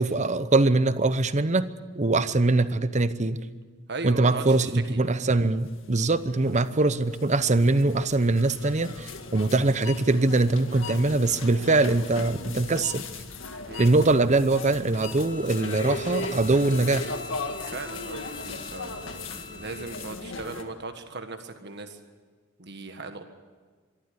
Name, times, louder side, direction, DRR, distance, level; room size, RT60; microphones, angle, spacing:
voice 1, 0.0-1.7 1.9-3.4 4.0-13.0 13.8-17.1, right 2 dB, 35° right, 13 dB, 0.8 m, -22 dB
voice 2, 3.9-5.0 6.4-6.5 13.7-13.9 17.6-22.0 22.6-23.2, right 3 dB, 55° right, 7 dB, 1.6 m, -38 dB
sound 1, 5.4-20.6, left 3 dB, 70° left, 1.9 m, -38 dB
Bowed string instrument, 14.9-20.2, left 3 dB, 25° left, 4.4 m, -45 dB
23.5 x 13.5 x 9.7 m, 1.5 s
head